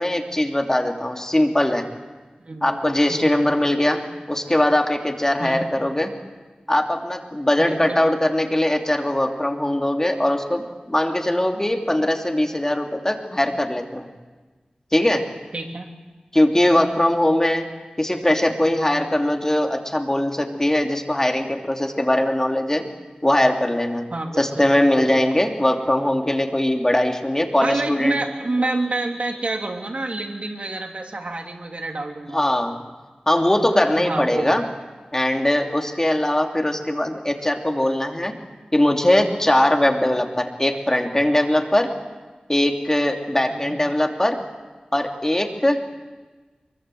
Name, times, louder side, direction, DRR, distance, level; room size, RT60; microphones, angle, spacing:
voice 1, 0.0-1.9 2.6-6.2 6.7-14.1 14.9-15.3 16.3-17.7 18.0-22.9 23.2-24.1 24.4-28.1 32.3-32.8 33.3-34.6 35.1-38.4 38.7-42.0 42.5-44.4 44.9-45.8, left 1 dB, 20° left, 3 dB, 2.9 m, -21 dB
voice 2, 2.4-2.8 3.1-3.5 5.4-5.7 7.6-8.0 15.5-15.9 16.6-16.8 24.1-25.5 27.6-32.4 34.0-34.6 43.5-43.8, right 2 dB, 60° right, 2 dB, 3.2 m, -28 dB
24.0 x 23.0 x 7.9 m, 1.3 s
wide cardioid pair, 60°, 3 cm